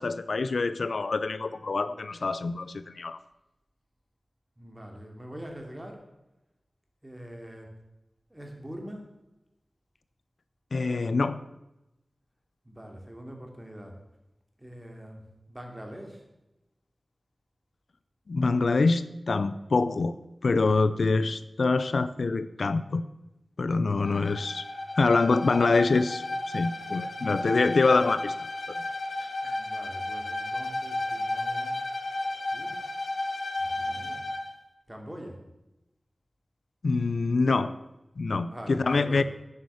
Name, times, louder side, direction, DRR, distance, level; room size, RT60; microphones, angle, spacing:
voice 1, 0.0-3.2 10.7-11.4 18.3-20.1 20.4-23.0 23.6-24.6 25.0-28.4 29.4-29.6 36.8-37.7 38.2-39.2, left 3 dB, 85° left, 14 dB, 0.5 m, -25 dB
voice 2, 4.6-6.0 7.0-7.7 8.3-9.1 12.6-14.0 14.6-16.2 29.4-31.7 32.5-32.9 33.6-34.2 34.9-35.4 38.4-39.2, equal, 20° right, 2 dB, 2.8 m, -43 dB
Bowed string instrument, 24.0-34.5, left 2 dB, 60° left, 1.3 m, -33 dB
11.0 x 9.7 x 7.0 m, 0.95 s
wide cardioid pair, 75°, 0 cm